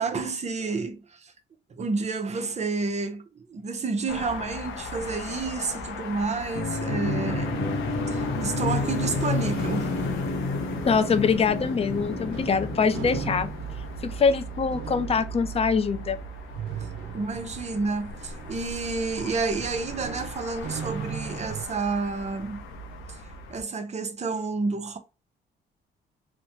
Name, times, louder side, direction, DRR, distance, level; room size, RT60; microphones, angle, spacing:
voice 1, 0.0-1.3 1.7-7.7 8.1-9.9 17.1-22.6 23.1-23.2 23.5-25.0, right 4 dB, 35° right, 0.7 m, -30 dB
sound 1, 4.1-23.6, left 2 dB, 85° left, 0.7 m, -38 dB
sound 2, 6.5-14.1, left 2 dB, 50° left, 0.9 m, -30 dB
voice 2, 8.0-8.4 10.9-13.5 14.0-16.2, left 5 dB, 30° left, 0.5 m, -24 dB
sound 3, 11.9-21.7, right 7 dB, 80° right, 0.5 m, -39 dB
3.1 x 2.1 x 2.8 m
cardioid pair, 90°, 20 cm